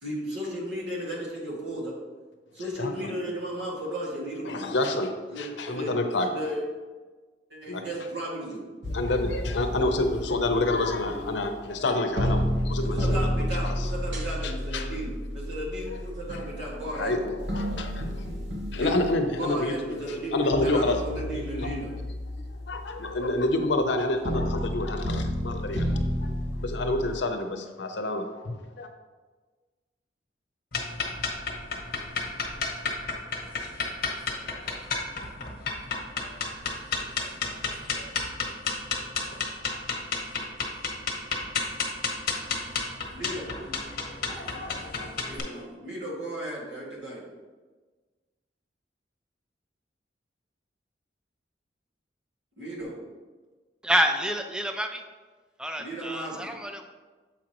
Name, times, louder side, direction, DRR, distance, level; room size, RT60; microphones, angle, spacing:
voice 1, 0.0-1.9 2.5-4.6 5.3-5.5 5.7-6.6 7.5-8.7 12.8-17.2 18.8-19.0 19.3-21.9 43.1-43.5 45.2-47.2 52.6-53.0 55.8-56.5, right 1 dB, 90° right, -5 dB, 1.9 m, -35 dB
voice 2, 2.8-3.2 4.5-6.3 7.7-7.8 8.9-13.4 13.6-13.9 14.4-14.9 15.9-16.0 16.3-16.5 16.9-18.2 18.7-21.7 22.5-28.9, left 2 dB, 85° left, 6 dB, 0.7 m, -28 dB
sound 1, 8.8-11.9 12.2-19.7 20.5-27.2, equal, 75° right, 1.3 m, -31 dB
sound 2, 30.7-45.4, left 4 dB, 55° left, 1.0 m, -31 dB
voice 3, 53.8-55.0 55.6-56.9, equal, 5° right, 5 dB, 0.3 m, -27 dB
7.1 x 5.0 x 3.0 m, 1.3 s
head